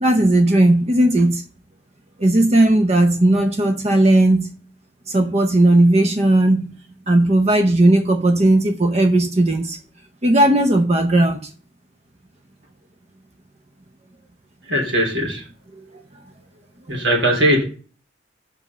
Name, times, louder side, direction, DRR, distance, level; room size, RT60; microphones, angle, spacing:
voice 1, 0.0-1.4 2.2-4.5 5.1-6.7 7.1-9.8 10.2-11.4, right 1 dB, 35° right, 0.7 m, -16 dB
voice 2, 14.7-15.4 16.9-17.6, right 1 dB, 90° right, 3.7 m, -19 dB
5.5 x 5.2 x 6.7 m
head